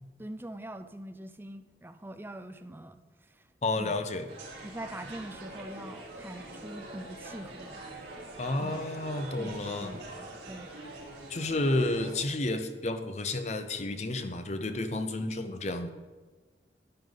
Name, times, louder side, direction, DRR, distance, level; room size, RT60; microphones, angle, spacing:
voice 1, 0.2-3.5 3.8-4.0 4.6-7.8 8.6-8.8 9.4-10.7, right 1 dB, 10° right, 8 dB, 0.5 m, -43 dB
voice 2, 3.6-4.2 8.4-10.0 11.3-15.9, left 2 dB, 40° left, 8 dB, 0.7 m, -31 dB
sound 1, 4.3-12.1, right 2 dB, 80° right, 3.2 m, -44 dB
12.0 x 10.0 x 3.9 m, 1.3 s
head